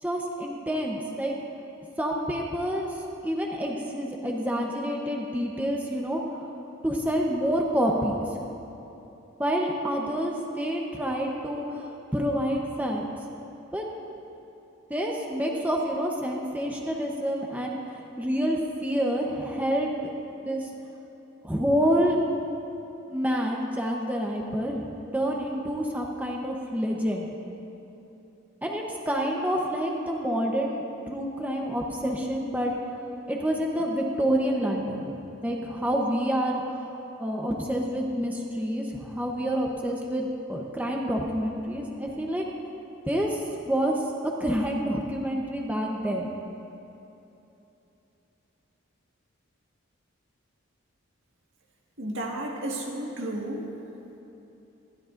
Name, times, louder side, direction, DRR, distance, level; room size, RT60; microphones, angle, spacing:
voice 1, 0.0-1.3 2.0-3.0 3.2-6.2 6.8-8.2 9.4-13.1 13.7-13.9 14.9-20.1 20.4-20.7 21.4-22.2 23.1-24.7 25.1-27.3 28.6-32.7 33.3-35.1 35.4-36.9 37.2-42.5 43.1-43.4 43.7-44.0 44.4-46.3, equal, 10° right, -1 dB, 0.8 m, -28 dB
voice 2, 52.0-53.6, right 1 dB, 70° right, -1 dB, 1.7 m, -32 dB
26.0 x 12.0 x 2.6 m, 2.9 s
head